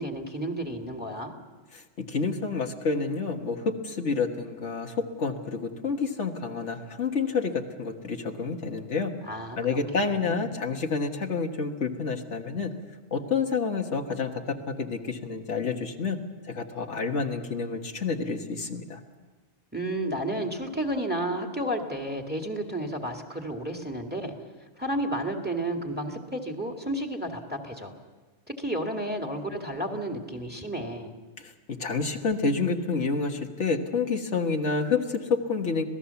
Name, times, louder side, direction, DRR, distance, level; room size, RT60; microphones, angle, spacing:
voice 1, 0.0-1.3 9.2-9.9 10.2-10.5 19.7-24.3 24.8-27.9 28.5-31.2, right 1 dB, 10° right, 3 dB, 2.1 m, -32 dB
voice 2, 1.7-9.1 9.6-12.7 13.1-16.2 16.5-19.0 31.4-35.8, left 4 dB, 75° left, 3 dB, 1.8 m, -29 dB
26.0 x 18.0 x 7.0 m, 1.3 s
omnidirectional pair, 1.2 m